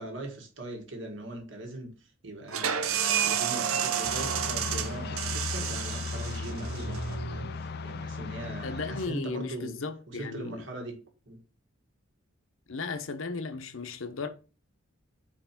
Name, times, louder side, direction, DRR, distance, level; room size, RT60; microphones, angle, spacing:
voice 1, 0.0-9.8 10.1-11.4, right 1 dB, 60° right, 1.7 m, -40 dB
sound 1, 2.5-7.9, right 8 dB, 80° right, 0.7 m, -31 dB
sound 2, 4.0-9.1, left 4 dB, 45° left, 0.3 m, -36 dB
voice 2, 8.6-10.6 12.7-14.3, left 4 dB, 65° left, 0.8 m, -35 dB
4.5 x 4.4 x 5.8 m
head